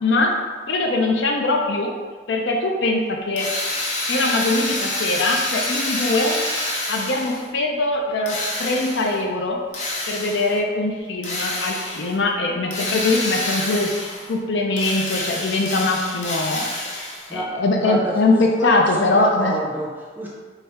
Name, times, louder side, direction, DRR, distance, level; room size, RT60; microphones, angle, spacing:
voice 1, 0.0-0.3 0.7-1.9 2.3-3.4 4.1-6.4 6.9-9.6 10.1-16.7 17.3-19.5, left 2 dB, 90° left, 1 dB, 0.5 m, -22 dB
Drill, 3.4-7.5 8.3-9.2 9.7-10.6 11.2-12.1 12.7-14.3 14.7-17.3, left 2 dB, 40° left, 0.6 m, -27 dB
voice 2, 17.1-20.3, right 1 dB, 10° right, -4 dB, 0.5 m, -28 dB
4.1 x 2.4 x 3.4 m, 1.5 s
head